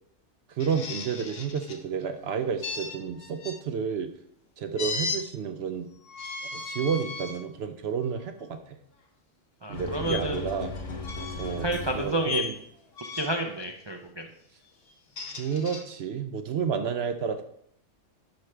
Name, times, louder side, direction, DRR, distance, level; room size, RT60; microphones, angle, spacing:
voice 1, 0.5-4.1 4.6-5.9 6.5-8.8 9.7-10.7 11.4-11.7 11.9-12.5 15.4-17.4, right 6 dB, 65° right, 8 dB, 0.8 m, -30 dB
sound 1, 0.6-1.8 2.6-3.6 4.8-5.2 6.0-7.4 8.0-8.2 10.0-10.2 11.0-11.6 12.2-12.5 13.0-13.5 14.9-15.8, left 4 dB, 55° left, 1.0 m, -36 dB
voice 2, 9.6-10.4 11.6-12.4 13.2-14.3, right 1 dB, 40° right, 3 dB, 0.4 m, -30 dB
sound 2, 9.7-12.4, left 3 dB, 80° left, 1.4 m, -37 dB
10.5 x 4.8 x 3.3 m, 0.71 s
omnidirectional pair, 1.3 m